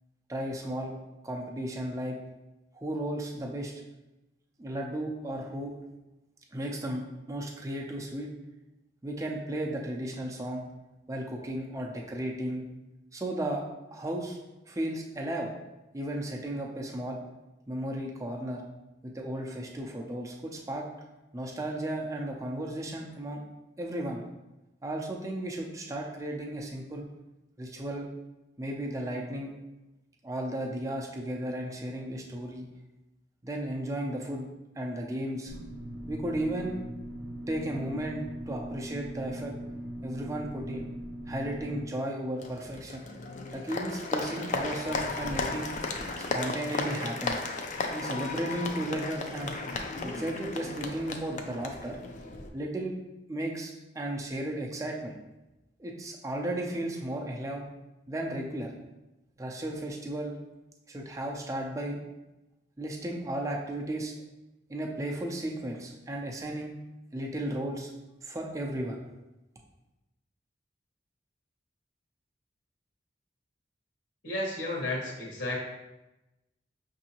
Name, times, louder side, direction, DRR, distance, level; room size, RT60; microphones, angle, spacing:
voice 1, 0.3-0.9 1.2-2.2 2.7-3.7 4.6-5.7 6.5-8.3 9.0-10.6 11.1-12.6 13.1-13.7 13.9-14.4 14.6-15.5 15.9-17.2 17.7-18.6 19.0-20.8 21.3-23.4 23.8-24.2 24.8-27.1 27.6-28.1 28.6-29.6 30.2-32.7 33.4-34.5 34.8-35.5 36.1-36.8 37.5-39.5 40.0-40.9 41.3-43.0 43.5-45.7 46.3-47.5 47.9-49.6 50.0-52.0 52.5-52.9 53.3-55.2 55.8-57.7 58.1-58.7 59.4-60.3 60.9-62.0 62.8-64.1 64.7-66.7 67.1-67.9 68.2-69.0, right 1 dB, 20° right, 0 dB, 0.5 m, -34 dB
sound 1, 35.5-41.9, equal, 85° right, 0.6 m, -40 dB
Applause, 42.4-52.5, left 3 dB, 45° left, 0.4 m, -35 dB
voice 2, 74.2-75.6, left 2 dB, 75° left, -3 dB, 1.2 m, -32 dB
6.1 x 2.7 x 2.8 m, 0.99 s
head